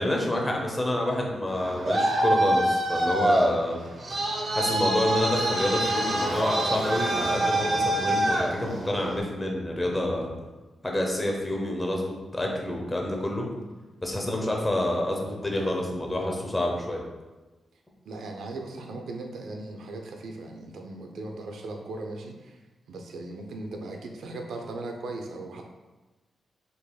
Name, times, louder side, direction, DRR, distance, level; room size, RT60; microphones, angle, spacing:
voice 1, 0.0-3.8 4.5-10.4 10.8-13.5 14.0-17.0, left 1 dB, 15° left, 0 dB, 0.8 m, -28 dB
Traffic noise roadway noise, 1.5-9.2, right 1 dB, 45° right, 0.8 m, -25 dB
voice 2, 18.0-22.6 22.9-25.6, right 2 dB, 80° right, 3 dB, 0.6 m, -38 dB
5.6 x 3.9 x 2.3 m, 1.2 s
wide cardioid pair, 145°, 0 cm